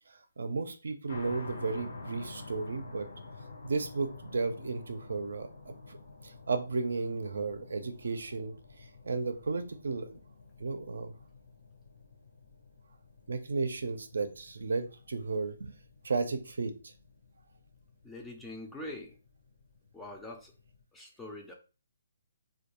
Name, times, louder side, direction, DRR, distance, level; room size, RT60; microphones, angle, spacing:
voice 1, 0.4-3.1 3.6-6.0 6.2-8.5 9.0-10.2 10.6-11.1 13.3-15.7 16.0-16.9, right 4 dB, 80° right, 8 dB, 0.4 m, -34 dB
sound 1, 1.1-20.8, left 3 dB, 70° left, 0.7 m, -50 dB
voice 2, 18.0-19.2 19.9-20.5 20.9-21.5, left 1 dB, 5° left, 0 dB, 0.3 m, -43 dB
2.3 x 2.2 x 2.8 m, 0.34 s
hypercardioid pair, 165°, 0 cm